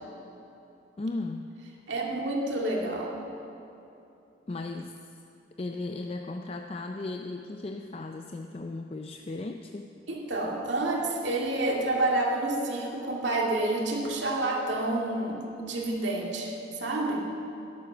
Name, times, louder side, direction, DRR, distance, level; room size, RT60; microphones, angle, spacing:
voice 1, 1.0-1.5 4.5-5.2 5.6-9.9, left 2 dB, 30° left, 5 dB, 0.4 m, -36 dB
voice 2, 1.9-3.1 10.1-17.3, right 2 dB, 75° right, -1 dB, 2.1 m, -29 dB
13.0 x 11.5 x 6.1 m, 2.8 s
head